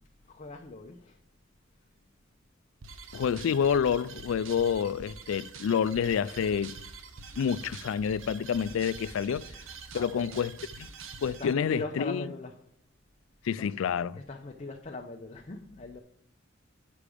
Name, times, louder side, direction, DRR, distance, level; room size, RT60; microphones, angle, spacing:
voice 1, 0.2-1.2 9.9-10.4 11.3-12.5 13.6-13.8 14.2-16.0, left 2 dB, 35° left, 0.6 m, -40 dB
sound 1, 2.8-11.5, right 5 dB, 75° right, 0.8 m, -45 dB
voice 2, 3.1-6.7 7.4-9.5 9.9-10.5 10.8-10.9 11.2-12.2 13.4-14.2, left 7 dB, 75° left, 0.3 m, -28 dB
8.4 x 6.1 x 5.0 m
head